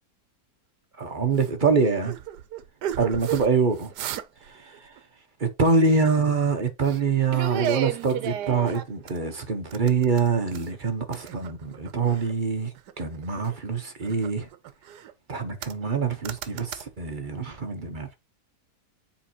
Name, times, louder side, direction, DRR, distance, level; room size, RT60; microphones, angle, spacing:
voice 1, 1.0-2.1 3.0-3.9 4.5-4.7 5.4-12.7 13.0-14.5 15.3-18.2, right 4 dB, 35° right, 0.9 m, -25 dB
sound 1, 1.4-1.6 2.0-3.5 3.8-4.5 4.7-5.0 5.7-6.4 6.8-7.0 7.3-9.2 9.7-10.8 11.1-12.3 12.8-13.6 14.0-15.1 15.6-16.0 16.3-16.8, right 11 dB, 75° right, 1.2 m, -33 dB
8.7 x 4.0 x 2.8 m
omnidirectional pair, 1.8 m